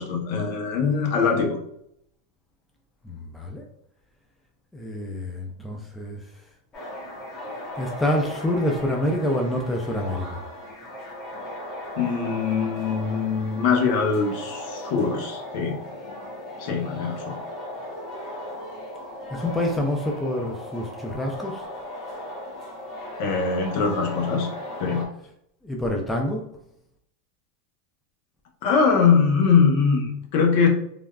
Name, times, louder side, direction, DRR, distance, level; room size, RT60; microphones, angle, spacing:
voice 1, 0.0-1.6 12.0-15.8 16.6-17.4 23.2-24.5 24.8-25.0 28.6-30.7, left 5 dB, 55° left, 3 dB, 0.7 m, -22 dB
voice 2, 3.0-3.7 4.7-6.2 7.8-10.4 19.3-21.7 25.6-26.4, left 1 dB, 5° left, 0 dB, 0.3 m, -27 dB
sound 1, 6.7-25.1, left 1 dB, 25° left, 1.1 m, -37 dB
3.3 x 2.3 x 2.3 m, 0.74 s
supercardioid pair, 150°, 0 cm